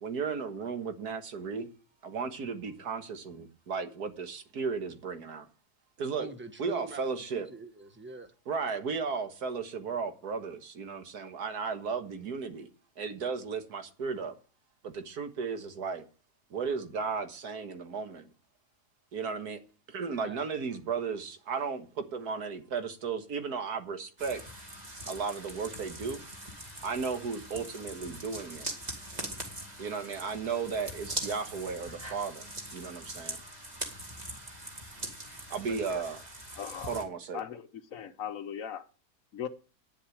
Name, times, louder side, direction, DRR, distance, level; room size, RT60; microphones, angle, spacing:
voice 1, 0.0-1.7 2.0-5.5 6.0-6.3 6.6-7.5 8.5-12.7 13.0-14.4 14.8-16.0 16.5-18.3 19.1-19.6 19.9-24.4 25.1-26.2 26.8-28.7 29.8-33.4 35.5-36.2 36.9-37.4, right 5 dB, 80° right, 1.9 m, -35 dB
voice 2, 6.2-8.3 20.2-20.4 32.7-32.8 35.7-36.0, right 3 dB, 10° right, 1.0 m, -45 dB
sound 1, 24.2-37.0, right 1 dB, 25° right, 2.2 m, -42 dB
voice 3, 36.6-36.9 37.3-37.6 37.9-38.8 39.3-39.5, left 9 dB, 65° left, 1.2 m, -38 dB
10.0 x 7.4 x 8.5 m
omnidirectional pair, 1.6 m